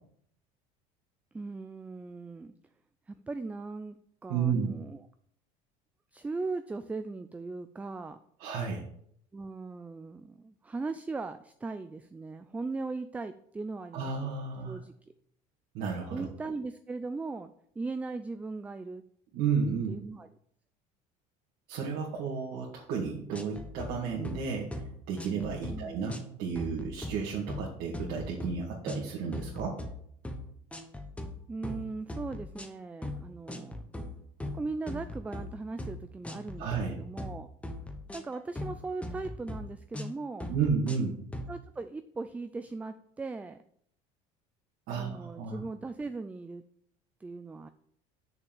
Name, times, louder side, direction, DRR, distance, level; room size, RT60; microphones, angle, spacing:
voice 1, 1.3-2.5 3.1-5.0 6.1-8.2 9.3-14.1 14.6-14.9 16.1-19.0 19.9-20.3 25.7-26.0 31.5-33.8 34.5-37.5 38.1-40.5 41.5-43.6 45.0-46.6 47.2-47.7, right 3 dB, 10° right, 10 dB, 0.3 m, -38 dB
voice 2, 4.3-4.7 8.4-8.9 13.9-14.8 15.7-16.3 19.3-19.9 21.7-24.8 25.1-29.8 36.6-36.9 40.5-41.2 44.9-45.6, right 6 dB, 65° right, -3 dB, 2.0 m, -32 dB
sound 1, 23.3-23.9 24.2-24.4 24.7-24.9 25.2-25.8 26.1-26.3 26.6-27.2 27.5-27.7 27.9-28.6 28.9-29.0 29.3-29.9 30.2-30.4 30.7-31.3 31.6-31.8 32.1-32.7 33.0-33.2 33.5-34.1 34.4-35.5 35.8-36.0 36.2-36.8 37.2-37.3 37.6-38.8 39.0-39.6 39.9-40.1 40.4-41.1 41.3-41.5, left 1 dB, 10° left, 1.1 m, -39 dB
6.5 x 5.8 x 7.1 m, 0.67 s
cardioid pair, 140°, 16 cm